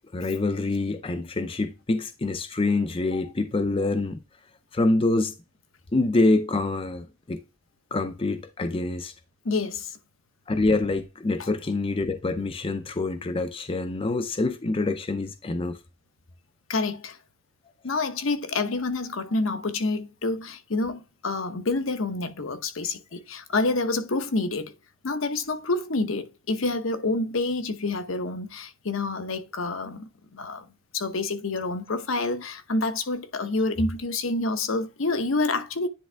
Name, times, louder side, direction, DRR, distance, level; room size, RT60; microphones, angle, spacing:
voice 1, 0.1-4.2 4.7-5.3 5.9-7.4 7.9-9.1 10.5-15.8, left 2 dB, 25° left, 0.5 m, -26 dB
voice 2, 9.4-9.9 11.4-11.5 16.7-17.2 17.8-24.7 25.0-30.6 30.9-35.9, left 3 dB, 70° left, 0.9 m, -28 dB
10.0 x 3.5 x 3.4 m
head